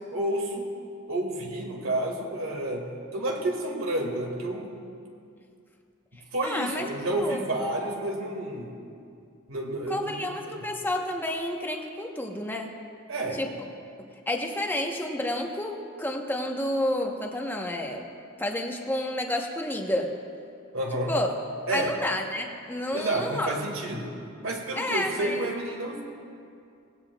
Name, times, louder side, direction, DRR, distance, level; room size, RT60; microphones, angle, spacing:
voice 1, 0.1-0.7 1.1-4.8 6.3-8.8 9.5-10.7 13.1-13.5 20.7-21.1 21.7-22.0 22.9-24.2 24.4-26.0, right 1 dB, 80° right, 1 dB, 2.0 m, -30 dB
voice 2, 6.4-6.8 7.1-7.4 9.9-12.7 13.3-13.5 14.3-18.1 18.4-20.1 21.1-21.3 21.7-23.5 24.8-25.4, left 1 dB, 10° left, 2 dB, 1.0 m, -30 dB
19.0 x 16.0 x 2.3 m, 2.4 s
head